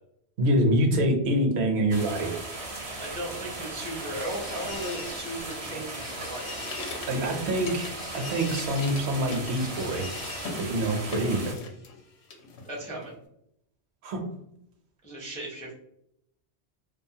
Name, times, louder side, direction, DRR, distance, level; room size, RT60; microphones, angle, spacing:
voice 1, 0.4-2.3 7.1-10.1 10.6-11.5 14.0-14.2, right 1 dB, 75° right, 3 dB, 0.9 m, -25 dB
sound 1, 1.9-11.5, right 2 dB, 45° right, 0.5 m, -37 dB
voice 2, 3.0-6.7 12.6-13.2 15.0-15.7, right 1 dB, 10° left, -3 dB, 0.4 m, -36 dB
sound 2, 3.2-12.1, left 4 dB, 50° left, 0.6 m, -45 dB
sound 3, 5.5-8.1 8.4-10.1 10.3-10.7 11.1-12.0 12.3-13.1, left 3 dB, 80° left, 0.8 m, -41 dB
2.5 x 2.3 x 2.7 m, 0.75 s
omnidirectional pair, 1.1 m